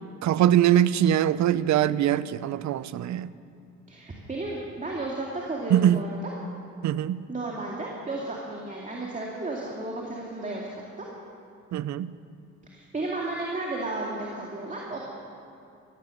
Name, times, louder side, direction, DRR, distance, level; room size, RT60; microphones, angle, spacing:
voice 1, 0.2-3.3 5.7-6.0 6.8-7.2 11.7-12.1, right 11 dB, 65° right, 17 dB, 0.6 m, -22 dB
voice 2, 3.9-6.3 7.3-10.7 11.0-11.1 12.7-15.0, right 2 dB, 25° right, -2 dB, 2.4 m, -33 dB
16.0 x 14.0 x 6.6 m, 2.6 s
cardioid pair, 90°, 30 cm